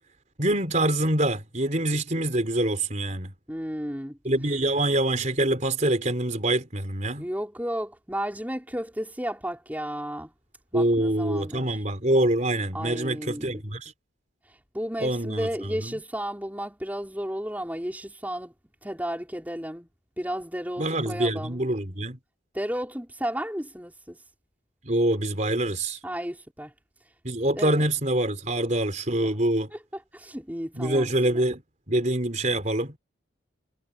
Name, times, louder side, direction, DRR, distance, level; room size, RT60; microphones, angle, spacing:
voice 1, 0.4-3.3 4.2-7.3 10.7-13.9 15.0-15.9 20.8-22.2 24.8-26.0 27.2-29.7 30.8-31.6 31.9-33.0, right 1 dB, 35° right, 4.1 m, -25 dB
voice 2, 3.5-4.2 7.2-10.3 10.7-11.8 12.7-13.6 14.7-18.5 18.8-19.9 20.2-21.6 22.5-24.2 26.0-26.7 27.6-27.9 29.7-29.8 30.1-31.1 31.3-31.5, equal, 10° right, 5.7 m, -33 dB
head